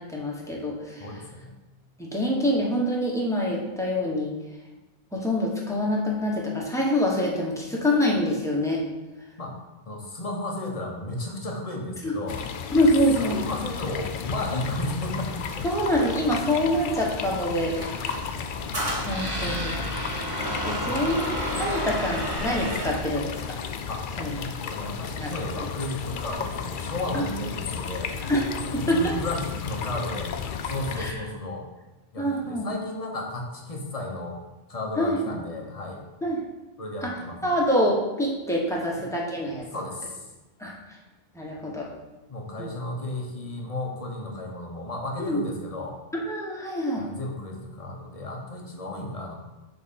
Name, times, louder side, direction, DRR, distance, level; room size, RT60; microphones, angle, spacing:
voice 1, 0.0-1.0 2.0-4.4 5.1-8.8 12.0-12.2 12.7-13.4 15.6-18.4 19.0-19.7 20.7-23.4 24.2-24.3 25.2-25.6 27.1-27.2 28.2-28.5 28.7-29.1 30.9-31.1 32.2-32.7 35.0-35.2 36.2-36.4 37.0-37.1 37.4-39.6 40.6-40.7 41.3-41.9 42.6-42.7 45.2-45.4 46.2-47.0, equal, 5° left, -3 dB, 1.4 m, -25 dB
voice 2, 1.0-1.5 9.4-9.6 9.9-12.4 13.2-15.7 19.3-19.9 23.9-28.1 28.8-30.3 30.6-31.7 32.1-34.4 34.7-36.0 36.8-37.4 39.0-39.1 39.7-40.3 42.3-46.0 46.9-49.3, left 1 dB, 35° left, 0 dB, 1.2 m, -34 dB
sound 1, 12.3-31.1, left 6 dB, 60° left, 0.6 m, -34 dB
Squeak, 17.8-23.1, equal, 20° right, 1.7 m, -31 dB
6.7 x 4.2 x 5.4 m, 1.1 s
omnidirectional pair, 1.1 m